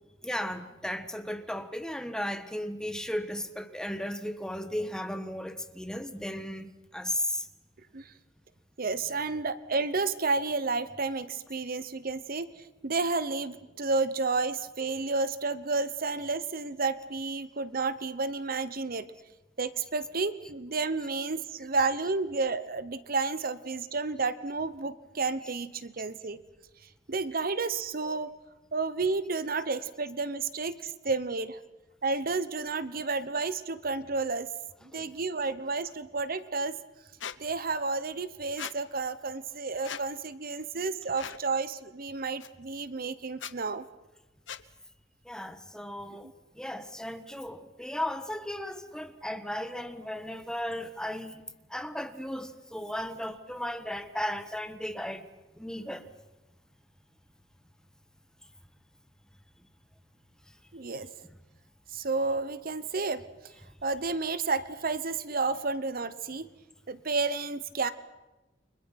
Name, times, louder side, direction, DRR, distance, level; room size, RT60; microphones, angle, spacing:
voice 1, 0.2-7.4 34.9-35.1 45.3-46.3 46.6-51.4 51.7-55.2 55.6-56.0, left 1 dB, 5° left, 1.5 m, -35 dB
voice 2, 8.8-12.5 12.8-19.1 19.6-26.4 27.1-28.3 28.7-31.6 32.0-34.5 34.9-36.7 37.4-43.8 60.7-61.1 61.9-63.2 63.8-66.5 66.9-67.9, right 3 dB, 50° right, 1.0 m, -31 dB
Squeak, 37.2-37.4 38.6-38.8 39.8-40.0 41.1-41.4 42.4-42.5 43.3-43.5 44.5-44.6, left 8 dB, 85° left, 1.1 m, -39 dB
30.0 x 24.5 x 5.9 m
head